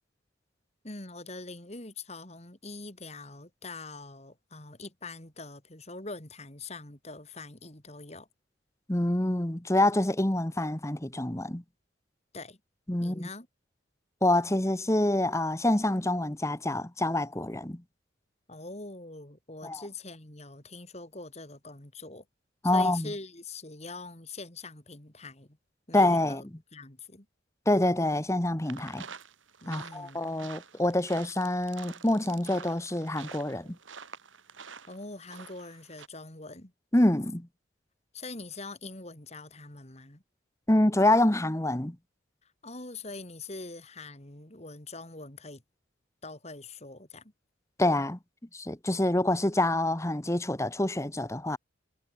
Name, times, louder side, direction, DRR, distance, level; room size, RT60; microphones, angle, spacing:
voice 1, 0.8-8.3 12.3-12.6 13.0-13.5 18.5-22.2 22.7-25.6 25.9-26.5 26.7-27.3 29.6-30.2 34.9-36.7 38.1-40.2 42.4-45.6 46.2-47.3, left 3 dB, 35° left, 3.3 m, -43 dB
voice 2, 8.9-11.6 12.9-13.3 14.2-17.8 19.6-19.8 22.6-23.1 25.9-26.4 27.7-29.0 29.7-33.8 36.9-37.5 40.7-42.0 47.8-48.2 48.5-51.6, left 1 dB, 15° left, 1.1 m, -26 dB
sound 1, 28.6-36.1, right 6 dB, 85° right, 2.7 m, -48 dB
head